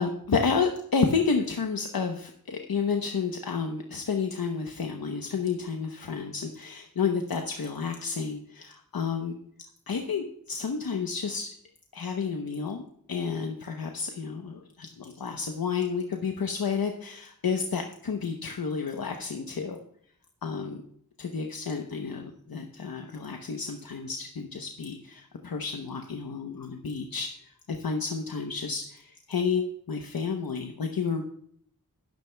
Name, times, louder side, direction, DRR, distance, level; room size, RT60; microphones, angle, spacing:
voice 1, 0.0-9.3 9.9-11.5 11.9-19.8 20.4-20.8 21.2-27.3 27.7-31.2, left 5 dB, 75° left, 3 dB, 0.9 m, -30 dB
12.5 x 12.5 x 2.3 m, 0.65 s
wide cardioid pair, 50°, 36 cm